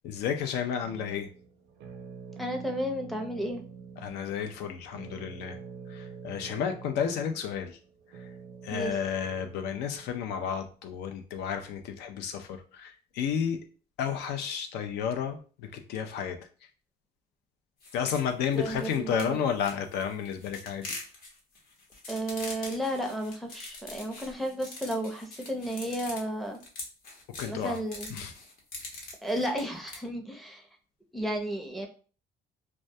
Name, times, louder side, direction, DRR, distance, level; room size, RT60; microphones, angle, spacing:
voice 1, 0.0-1.3 4.0-5.6 5.9-7.8 8.1-8.3 8.6-13.6 14.0-16.4 17.9-20.9 27.4-27.8 28.1-28.3, left 8 dB, 80° left, 6 dB, 0.4 m, -32 dB
sound 1, 0.8-10.7, right 6 dB, 80° right, 0.5 m, -47 dB
voice 2, 2.4-3.6 8.7-9.0 18.5-19.4 22.1-26.6 27.5-28.1 29.2-30.6 31.1-31.9, right 1 dB, ahead, 2 dB, 0.5 m, -33 dB
sound 2, 17.8-30.0, left 2 dB, 65° left, 0.9 m, -43 dB
2.2 x 2.1 x 2.6 m, 0.38 s
cardioid pair, 110°, 17 cm